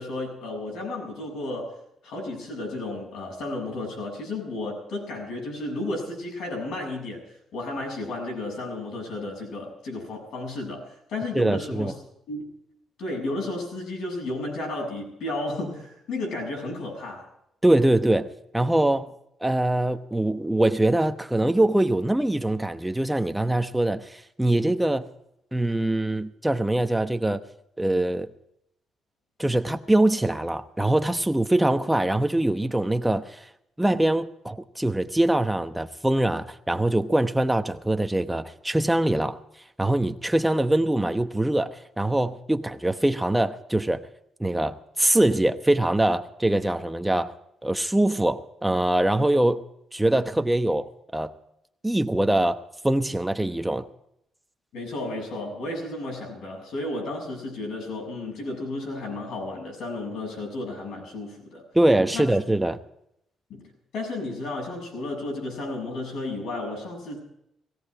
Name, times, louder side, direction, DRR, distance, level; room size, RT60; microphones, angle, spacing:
voice 1, 0.0-1.8 2.0-7.2 7.5-11.9 12.3-12.4 13.0-17.3 54.7-61.6 62.1-62.3 63.5-63.6 63.9-67.2, left 2 dB, 75° left, 7.3 m, -33 dB
voice 2, 11.3-11.9 17.6-18.3 18.5-19.1 19.4-25.1 25.5-27.4 27.8-28.3 29.4-33.4 33.8-39.4 39.8-44.0 44.4-47.3 47.6-49.6 49.9-51.3 51.8-53.9 61.7-62.8, right 1 dB, 5° right, 1.0 m, -23 dB
17.0 x 17.0 x 4.9 m
cardioid pair, 90°, 0 cm